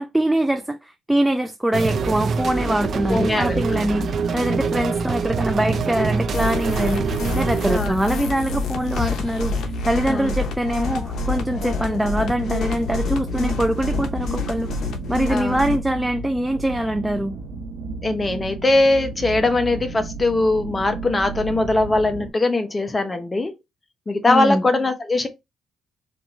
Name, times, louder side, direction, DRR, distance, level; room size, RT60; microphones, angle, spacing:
voice 1, 0.0-14.7 15.1-17.4 24.3-24.6, right 1 dB, 5° right, 0.4 m, -23 dB
sound 1, 1.7-7.8, right 5 dB, 55° right, 0.6 m, -25 dB
voice 2, 3.1-3.6 7.6-8.0 10.1-10.3 15.3-15.6 18.0-23.5 24.1-25.3, left 2 dB, 25° left, 0.9 m, -21 dB
sound 2, 3.5-22.3, right 3 dB, 80° right, 1.1 m, -34 dB
sound 3, 6.3-15.8, left 4 dB, 70° left, 0.8 m, -28 dB
4.3 x 2.6 x 3.2 m
cardioid pair, 90°, 0 cm